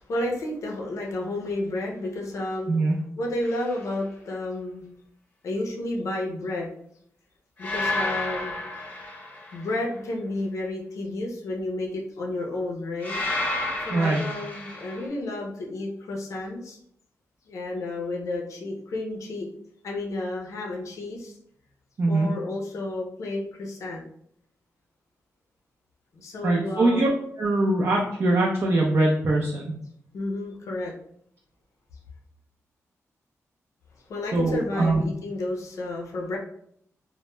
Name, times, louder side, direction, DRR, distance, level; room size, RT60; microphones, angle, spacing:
voice 1, 0.0-4.8 5.4-6.7 7.6-8.5 9.5-13.1 13.9-16.8 17.5-19.5 19.8-21.4 22.1-24.0 26.1-27.1 30.1-30.9 34.1-36.4, left 2 dB, 70° left, -1 dB, 0.5 m, -31 dB
sound 1, 3.4-3.8 7.6-9.8 13.0-15.1, left 2 dB, 35° left, 0.7 m, -31 dB
voice 2, 13.9-14.2 22.0-22.3 26.4-27.1 27.4-29.7 34.3-35.0, right 2 dB, 50° right, -1 dB, 0.4 m, -22 dB
2.1 x 2.1 x 3.0 m, 0.69 s
cardioid pair, 90°, 6 cm